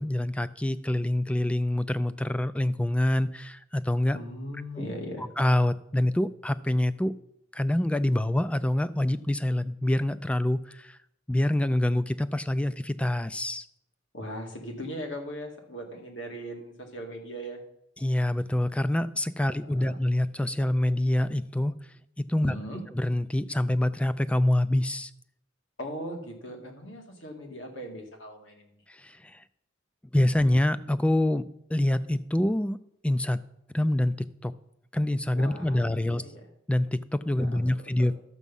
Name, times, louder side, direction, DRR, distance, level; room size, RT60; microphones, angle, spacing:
voice 1, 0.0-4.2 4.8-4.9 5.2-7.2 7.5-11.0 11.3-13.7 18.0-21.7 22.2-22.6 22.9-25.1 28.9-29.4 30.1-32.8 33.0-33.4 33.7-34.1 34.4-34.5 34.9-36.2 36.7-38.2, left 1 dB, 5° left, 14 dB, 0.3 m, -26 dB
voice 2, 4.1-5.3 14.1-17.6 19.5-20.0 22.4-22.8 25.8-28.8 35.3-36.5 37.4-37.6 38.0-38.1, equal, 75° left, 2 dB, 2.1 m, -39 dB
12.5 x 7.3 x 5.4 m, 0.76 s
head